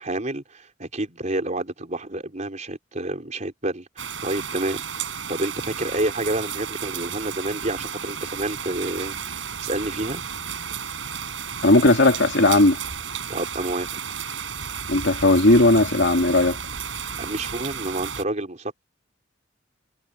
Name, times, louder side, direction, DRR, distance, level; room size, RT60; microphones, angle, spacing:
voice 1, 0.0-10.2 13.3-13.9 17.2-18.8, right 1 dB, 40° right, 4.1 m, -29 dB
sound 1, 4.0-18.2, right 7 dB, 75° right, 6.5 m, -33 dB
voice 2, 11.6-12.8 14.9-16.6, left 2 dB, 65° left, 2.6 m, -17 dB
head